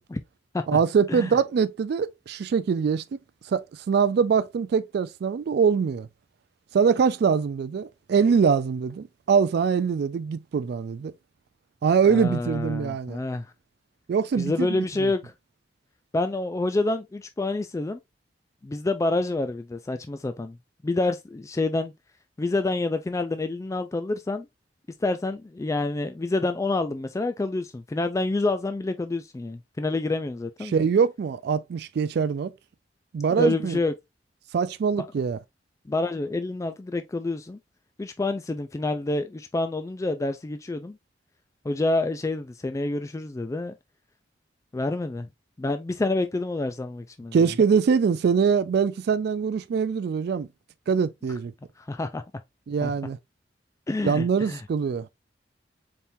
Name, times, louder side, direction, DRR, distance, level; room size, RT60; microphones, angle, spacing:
voice 1, 0.7-3.0 3.5-6.1 6.7-11.1 11.8-13.2 14.1-15.1 30.6-32.5 33.1-33.8 34.5-35.4 47.3-50.5 50.9-51.5 52.7-53.2 54.0-55.1, right 6 dB, 60° right, 0.3 m, -23 dB
voice 2, 12.1-13.5 14.4-15.3 16.1-18.0 18.6-20.6 20.8-21.9 22.4-24.5 25.0-30.8 33.4-33.9 35.9-37.6 38.0-41.0 41.6-43.7 44.7-45.3 45.6-47.4 51.9-52.2 52.8-52.9 53.9-54.6, left 2 dB, 15° left, 0.3 m, -28 dB
4.2 x 3.5 x 2.6 m
head